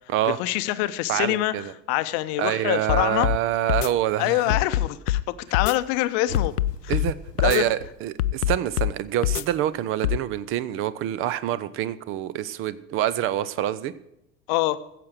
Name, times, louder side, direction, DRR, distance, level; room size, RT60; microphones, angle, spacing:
voice 1, 0.3-3.3 4.2-6.5 6.8-6.9 7.4-7.7 14.5-14.8, left 16 dB, 40° left, 13 dB, 0.8 m, -25 dB
voice 2, 1.1-1.7 2.4-4.6 6.9-7.2 7.4-13.9, right 12 dB, 25° right, 17 dB, 0.6 m, -26 dB
sound 1, 2.9-3.4 3.7-3.9 4.5-5.2 5.5-5.7 6.3-7.1 7.4-7.6 8.2-8.9 9.2-9.4 10.0-10.2, left 13 dB, 70° left, 0.5 m, -24 dB
sound 2, 6.2-8.6, left 5 dB, 85° left, 0.9 m, -37 dB
15.0 x 7.6 x 6.4 m, 0.83 s
figure-of-eight pair, 80°, 47 cm